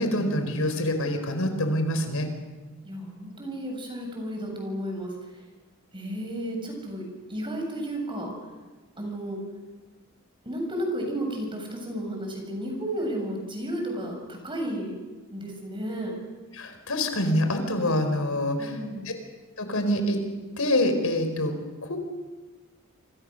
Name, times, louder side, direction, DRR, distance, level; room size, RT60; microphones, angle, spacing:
voice 1, 0.0-2.3 16.5-18.7 19.6-20.2 20.6-21.5 21.8-22.0, left 1 dB, 80° left, 6 dB, 4.6 m, -25 dB
voice 2, 2.8-5.4 5.9-7.0 7.3-8.3 9.0-9.4 10.4-14.9 15.3-16.1 18.6-19.1, right 1 dB, 25° right, 2 dB, 7.6 m, -33 dB
27.5 x 26.5 x 6.6 m, 1.2 s
head